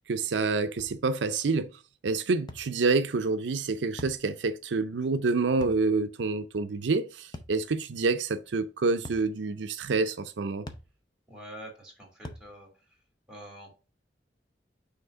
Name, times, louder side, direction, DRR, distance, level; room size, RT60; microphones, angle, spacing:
voice 1, 0.1-1.7 2.0-10.7, right 3 dB, 80° right, 0.5 m, -27 dB
sound 1, 0.8-1.0 2.5-2.7 4.0-4.2 5.6-5.9 7.3-7.6 9.0-9.3 10.7-10.9 12.2-12.5, left 2 dB, 25° left, 0.6 m, -42 dB
voice 2, 11.3-13.0 13.3-13.7, right 1 dB, 5° right, 2.8 m, -46 dB
5.8 x 3.3 x 5.4 m
head